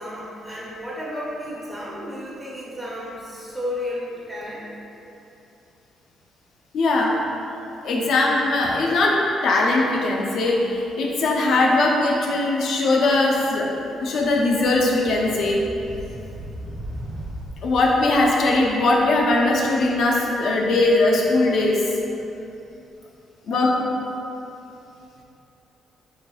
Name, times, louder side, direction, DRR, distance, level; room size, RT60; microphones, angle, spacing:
voice 1, 0.0-4.6 23.5-23.8, left 1 dB, 5° right, -7 dB, 0.6 m, -33 dB
voice 2, 6.7-7.1 7.8-9.2 9.4-15.6 17.6-21.8 23.5-23.7, left 2 dB, 70° left, -2 dB, 0.5 m, -20 dB
sound 1, 12.4-12.7 13.0-21.9, right 1 dB, 75° right, 0.8 m, -39 dB
3.6 x 3.2 x 2.3 m, 2.8 s
cardioid pair, 90°, 0 cm